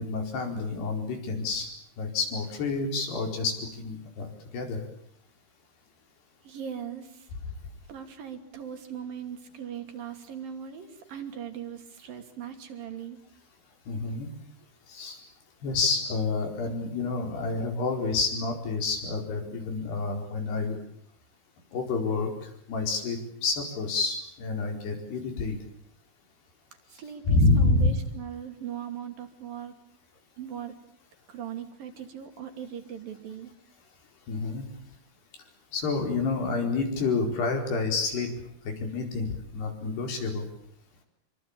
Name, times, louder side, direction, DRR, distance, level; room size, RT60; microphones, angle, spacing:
voice 1, 0.0-1.7 2.0-4.3 4.5-4.8 13.9-14.3 14.9-15.2 15.6-20.8 21.7-22.3 22.7-25.6 27.3-27.9 34.3-34.7 35.7-38.3 38.6-40.4, left 3 dB, 85° left, 4 dB, 6.7 m, -28 dB
voice 2, 6.4-7.3 7.9-13.2 26.9-29.7 30.4-30.7 31.3-33.5, right 8 dB, 65° right, 6 dB, 4.3 m, -39 dB
26.5 x 24.0 x 8.8 m, 0.68 s
omnidirectional pair, 4.6 m